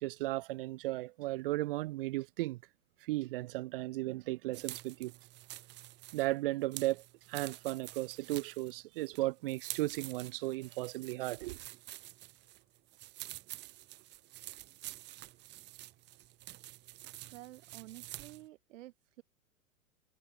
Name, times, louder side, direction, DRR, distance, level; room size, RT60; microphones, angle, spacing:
voice 1, 0.0-2.6 3.0-5.1 6.1-7.0 7.3-11.6, right 18 dB, 40° right, 0.4 m, -35 dB
sound 1, 4.5-18.5, right 17 dB, 25° right, 0.8 m, -48 dB
voice 2, 17.3-19.2, right 15 dB, 60° right, 1.0 m, -51 dB
hypercardioid pair, 110°, 43 cm